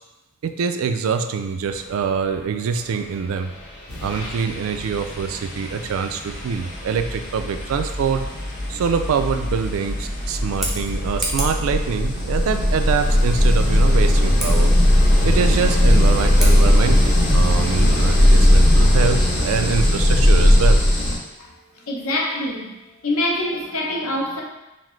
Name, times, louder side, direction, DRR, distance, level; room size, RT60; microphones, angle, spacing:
voice 1, 0.4-3.5 4.0-8.3 8.7-14.7 15.2-20.8, right 6 dB, 70° right, 8 dB, 0.3 m, -24 dB
sound 1, 3.4-3.5 3.9-21.2, left 1 dB, 50° left, 1.0 m, -18 dB
Scissors, 10.4-11.7 14.3-14.5 16.3-16.6, right 1 dB, ahead, 0.5 m, -29 dB
voice 2, 21.9-22.7 23.0-24.4, left 1 dB, 75° left, -1 dB, 0.7 m, -24 dB
5.7 x 2.0 x 3.1 m, 0.99 s
head